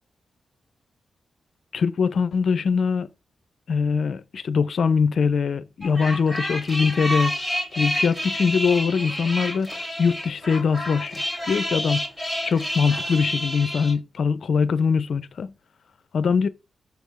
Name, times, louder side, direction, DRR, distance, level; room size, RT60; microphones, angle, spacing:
voice 1, 1.7-3.1 3.7-7.3 7.7-12.0 12.4-15.5 16.1-16.5, left 5 dB, 70° left, 0.7 m, -22 dB
sound 1, 5.8-13.9, equal, ahead, 2.5 m, -29 dB
7.1 x 3.5 x 6.3 m
cardioid pair, 65°, 0 cm